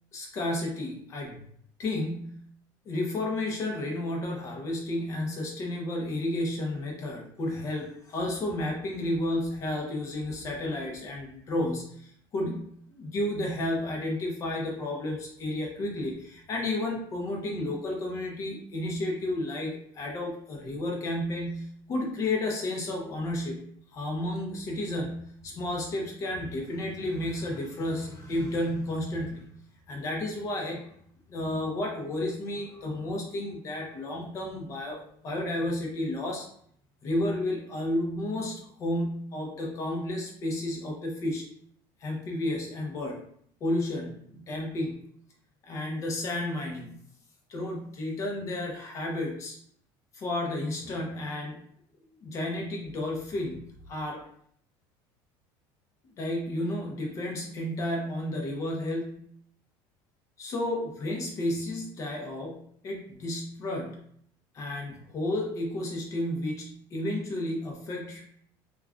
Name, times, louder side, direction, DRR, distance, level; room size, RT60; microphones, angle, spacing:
voice 1, 0.1-1.4 1.8-2.4 2.9-23.6 23.9-29.4 29.9-30.9 31.3-36.5 37.0-41.4 42.0-43.2 43.6-45.0 45.6-46.9 47.5-49.6 50.1-51.6 52.2-54.2 56.2-59.3 60.4-64.0 64.5-68.2, left 1 dB, 30° left, 0 dB, 0.6 m, -32 dB
2.3 x 2.2 x 3.5 m, 0.65 s
cardioid pair, 175°, 11 cm